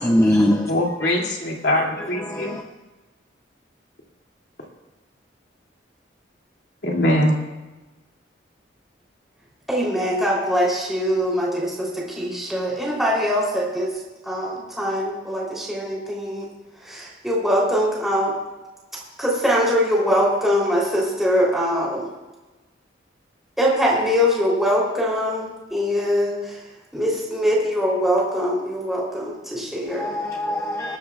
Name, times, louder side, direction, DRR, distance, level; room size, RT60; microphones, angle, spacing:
voice 1, 0.0-0.7 1.0-1.1 2.0-2.6 29.9-31.0, left 1 dB, 15° left, 1 dB, 0.6 m, -22 dB
voice 2, 0.6-2.5 6.8-7.3, left 1 dB, 65° left, -2 dB, 2.6 m, -22 dB
voice 3, 9.7-16.5 16.8-18.3 19.2-22.0 23.6-26.6 26.9-30.1, equal, ahead, -5 dB, 3.4 m, -22 dB
19.5 x 13.5 x 2.4 m, 1.1 s
head